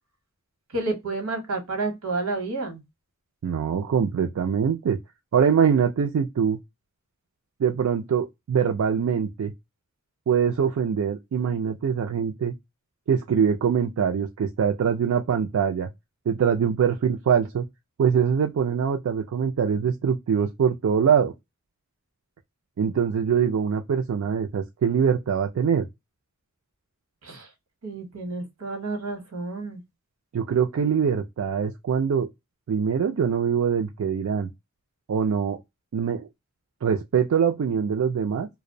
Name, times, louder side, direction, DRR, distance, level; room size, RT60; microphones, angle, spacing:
voice 1, 0.7-2.8 27.2-27.5 27.8-29.8, right 3 dB, 85° right, 0.9 m, -30 dB
voice 2, 3.4-5.0 5.3-6.6 7.6-9.5 10.3-12.5 13.1-15.9 16.3-17.6 18.0-21.3 22.8-25.9 30.3-32.3 32.7-34.5 35.1-35.6 35.9-36.3 36.8-38.5, right 7 dB, 70° right, 0.4 m, -23 dB
2.5 x 2.0 x 2.5 m
head